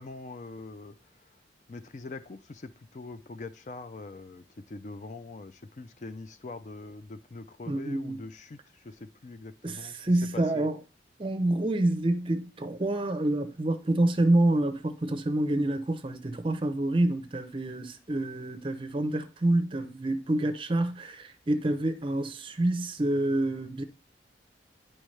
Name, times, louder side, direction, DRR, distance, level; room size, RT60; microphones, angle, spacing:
voice 1, 0.0-1.4 1.7-10.0 10.3-10.7, left 3 dB, 40° left, 0.4 m, -43 dB
voice 2, 7.7-8.2 9.6-10.8 11.2-23.8, right 1 dB, 30° right, 0.5 m, -27 dB
10.0 x 4.4 x 3.2 m
head